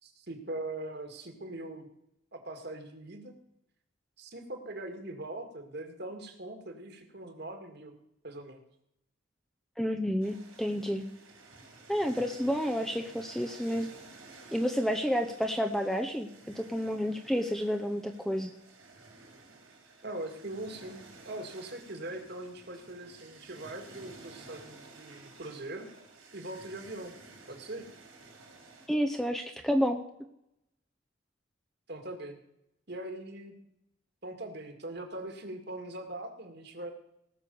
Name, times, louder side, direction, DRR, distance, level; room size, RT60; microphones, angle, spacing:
voice 1, 0.0-1.9 2.3-3.3 4.2-7.9 8.2-8.6 20.0-25.9 26.3-27.1 27.5-27.9 31.9-32.4 32.9-33.5 34.2-36.9, right 1 dB, 50° right, 6 dB, 2.0 m, -41 dB
voice 2, 9.8-11.0 11.9-13.9 14.5-18.5 28.9-30.0, equal, ahead, 5 dB, 0.7 m, -30 dB
sound 1, 10.2-28.9, right 3 dB, 80° right, 4.4 m, -53 dB
18.0 x 6.3 x 6.9 m, 0.79 s
head